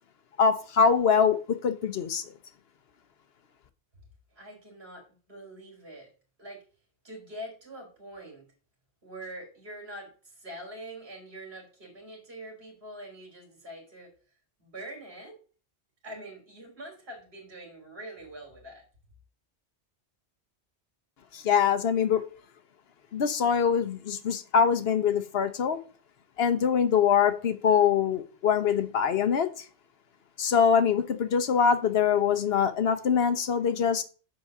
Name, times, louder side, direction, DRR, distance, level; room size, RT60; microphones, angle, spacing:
voice 1, 0.4-2.2 21.3-22.2 23.1-25.8 26.4-29.5 30.4-34.0, left 7 dB, 65° left, 11 dB, 1.0 m, -24 dB
voice 2, 4.3-6.1 6.4-6.6 7.0-8.5 9.0-14.1 14.6-15.4 16.0-18.8, right 1 dB, 60° right, -1 dB, 3.5 m, -44 dB
6.0 x 4.9 x 6.5 m, 0.38 s
omnidirectional pair, 1.1 m